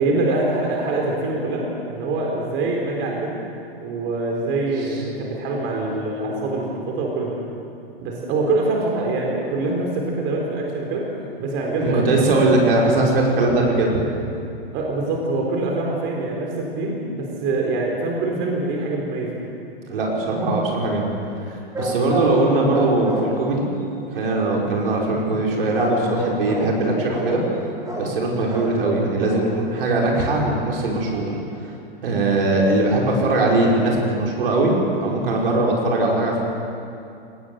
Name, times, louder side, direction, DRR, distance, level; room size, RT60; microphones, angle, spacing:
voice 1, 0.0-3.3 3.8-7.4 8.0-11.0 11.4-12.5 14.7-19.4, right 2 dB, 40° right, -1 dB, 4.2 m, -24 dB
voice 2, 11.8-14.0 19.9-21.1 21.4-23.7 24.1-27.4 28.0-31.2 31.6-31.7 32.0-34.7 35.0-36.4, right 2 dB, 65° right, -2 dB, 5.2 m, -20 dB
sound 1, 21.7-22.4 22.7-23.5 25.7-26.8 27.1-27.4 27.8-28.1 28.5-28.8 29.2-29.5 29.9-30.0 30.2-30.3, right 1 dB, 10° right, 4.8 m, -28 dB
20.5 x 19.0 x 7.8 m, 2.6 s
hypercardioid pair, 105°, 30 cm